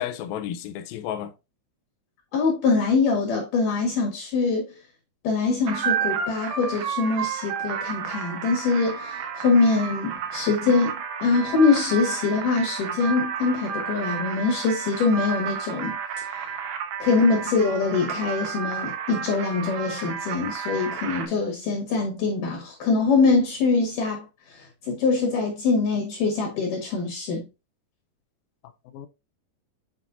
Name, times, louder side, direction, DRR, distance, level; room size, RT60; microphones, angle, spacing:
voice 1, 0.0-1.3 28.9-29.1, left 10 dB, 80° left, 2.2 m, -32 dB
voice 2, 2.3-4.8 5.2-16.0 16.3-16.5 17.0-27.4, left 4 dB, 60° left, 2.9 m, -23 dB
sound 1, 5.7-21.3, right 7 dB, 85° right, 1.6 m, -31 dB
7.6 x 5.6 x 2.5 m
omnidirectional pair, 4.7 m